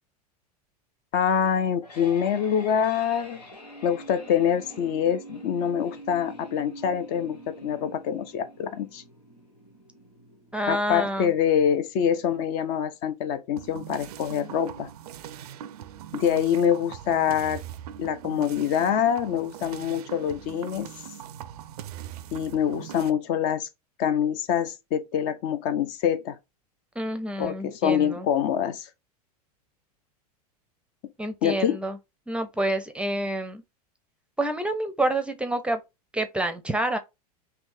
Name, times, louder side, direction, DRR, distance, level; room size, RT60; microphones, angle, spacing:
voice 1, 1.1-3.4 3.8-9.0 10.7-14.9 16.1-17.6 18.0-20.9 22.3-23.7 24.0-26.4 27.4-28.9 31.4-31.8, left 8 dB, 50° left, 0.6 m, -25 dB
sound 1, 1.5-12.5, right 1 dB, 90° left, 1.4 m, -46 dB
voice 2, 10.5-11.3 27.0-28.3 31.2-32.0 32.3-33.6 34.4-35.8 36.1-37.0, right 1 dB, 5° right, 0.6 m, -28 dB
sound 2, 13.6-23.1, right 10 dB, 70° right, 0.4 m, -41 dB
3.5 x 2.8 x 2.6 m
hypercardioid pair, 95°, 20 cm